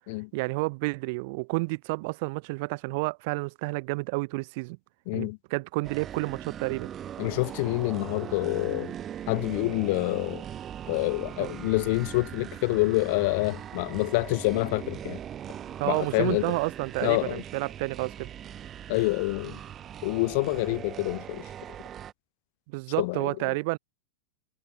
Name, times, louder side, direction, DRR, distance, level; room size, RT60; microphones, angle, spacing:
voice 1, 0.3-4.8 5.1-6.9 11.4-11.5 15.8-18.3 22.7-23.8, right 27 dB, 55° right, 1.8 m, -30 dB
voice 2, 5.1-5.4 7.2-8.9 9.3-10.4 10.9-15.2 15.8-16.6 17.0-17.4 18.9-19.6 20.0-21.4 23.0-23.3, left 26 dB, 55° left, 1.4 m, -27 dB
sound 1, 5.8-22.1, right 10 dB, 25° right, 6.5 m, -40 dB
supercardioid pair, 135°, 0 cm